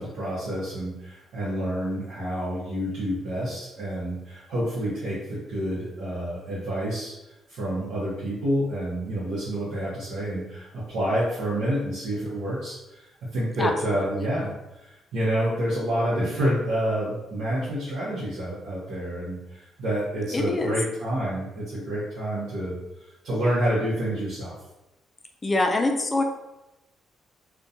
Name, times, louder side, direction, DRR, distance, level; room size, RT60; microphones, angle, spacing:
voice 1, 0.0-7.1 7.5-22.8 23.2-24.5, right 1 dB, 85° right, -9 dB, 0.7 m, -28 dB
voice 2, 13.6-14.3 20.3-20.7 25.4-26.2, left 2 dB, 25° left, 3 dB, 0.4 m, -25 dB
2.3 x 2.1 x 2.7 m, 0.95 s
cardioid pair, 90°, 0 cm